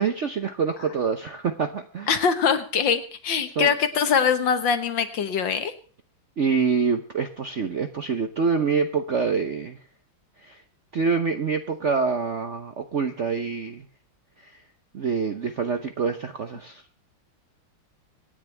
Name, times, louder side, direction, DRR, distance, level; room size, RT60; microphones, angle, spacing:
voice 1, 0.0-2.1 3.6-3.7 6.4-9.8 10.4-10.6 10.9-13.9 14.4-14.6 14.9-16.8, right 5 dB, 55° right, 8 dB, 0.8 m, -26 dB
voice 2, 2.1-5.7, left 6 dB, 65° left, 10 dB, 1.9 m, -23 dB
25.5 x 9.9 x 3.4 m, 0.41 s
omnidirectional pair, 2.3 m